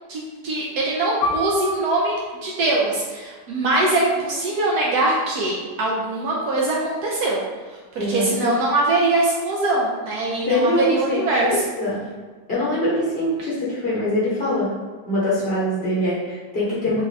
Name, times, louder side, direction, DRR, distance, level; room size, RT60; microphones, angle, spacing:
voice 1, 0.1-2.1 2.4-7.4 7.7-11.6, right 2 dB, 70° right, -3 dB, 1.0 m, -22 dB
Piano, 1.2-6.3 6.6-6.8 7.5-7.9, left 1 dB, 75° left, 1.2 m, -32 dB
voice 2, 8.0-8.5 10.4-12.1 12.5-14.7 15.1-17.0, left 1 dB, 40° left, -8 dB, 1.0 m, -23 dB
3.5 x 2.6 x 3.2 m, 1.5 s
omnidirectional pair, 1.9 m